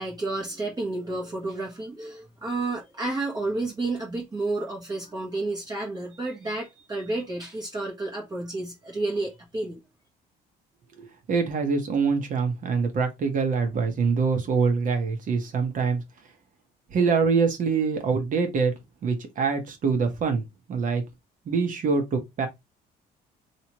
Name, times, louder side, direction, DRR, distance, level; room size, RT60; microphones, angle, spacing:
voice 1, 0.0-9.8, right 2 dB, 25° right, 1.1 m, -31 dB
voice 2, 11.0-16.0 16.9-18.7 19.0-20.4 20.7-21.0 21.5-22.5, right 5 dB, 50° right, 1.2 m, -24 dB
3.1 x 3.0 x 3.0 m
cardioid pair, 110°, 17 cm